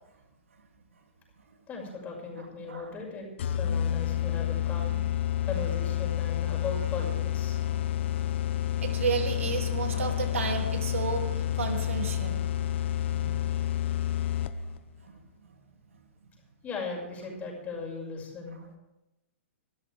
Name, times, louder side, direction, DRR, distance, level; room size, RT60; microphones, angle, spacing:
voice 1, 1.7-5.0 5.5-7.6 16.6-18.6, left 4 dB, 20° left, -1 dB, 6.2 m, -38 dB
voice 2, 2.4-2.9 7.7-7.8 8.1-8.2 8.6-13.6 14.5-14.7 15.0-15.2, right 5 dB, 80° right, 3 dB, 2.8 m, -33 dB
sound 1, 3.4-14.8, left 11 dB, 60° left, 0.9 m, -29 dB
24.0 x 13.0 x 3.5 m, 0.95 s
hypercardioid pair, 125°, 7 cm